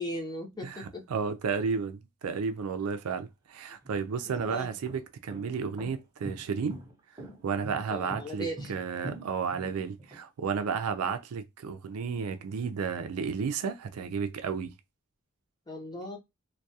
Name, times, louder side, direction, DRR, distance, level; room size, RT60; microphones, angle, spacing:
voice 1, 0.0-1.0 4.5-4.7 7.9-8.7 15.7-16.2, equal, 20° left, 0.7 m, -37 dB
voice 2, 0.6-6.8 7.4-14.7, right 6 dB, 90° right, 0.4 m, -32 dB
sound 1, 3.7-10.2, right 1 dB, 20° right, 0.7 m, -44 dB
2.3 x 2.2 x 2.7 m
head